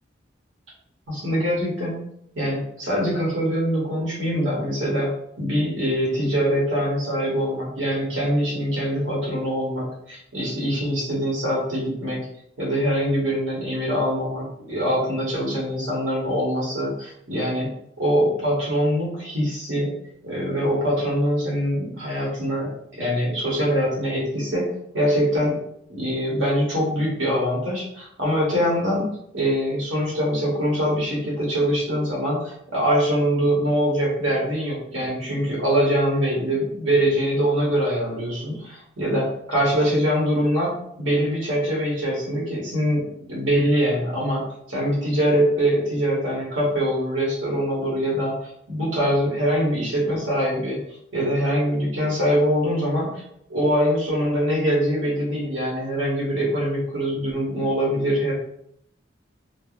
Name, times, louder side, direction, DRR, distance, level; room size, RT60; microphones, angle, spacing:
voice 1, 1.1-2.0 2.3-12.2 12.6-17.7 18.0-19.9 20.2-24.7 24.9-25.6 25.9-29.1 29.3-40.7 41.0-44.4 44.7-48.3 48.7-50.8 51.1-53.2 53.5-58.3, equal, 90° right, -4 dB, 1.1 m, -23 dB
3.4 x 2.2 x 2.4 m, 0.72 s
head